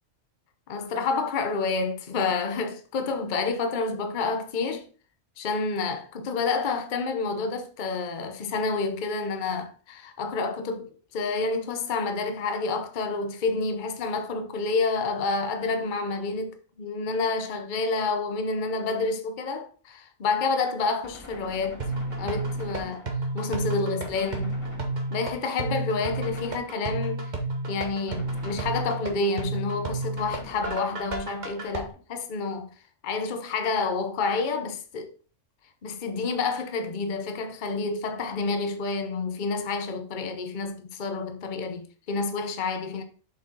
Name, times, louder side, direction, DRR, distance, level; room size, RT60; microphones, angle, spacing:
voice 1, 0.7-4.9 5.4-21.8 22.2-23.1 23.3-24.6 25.1-27.3 27.7-32.7 33.0-35.1 35.8-43.0, left 4 dB, 40° left, 0.9 m, -29 dB
Gunshot gunfire, 21.0-23.5 24.0-25.4 26.1-27.2 28.1-29.5 30.2-31.4, left 2 dB, 25° left, 1.7 m, -47 dB
sound 1, 21.8-31.8, right 2 dB, 35° right, 1.2 m, -31 dB
6.9 x 5.3 x 3.7 m
omnidirectional pair, 1.3 m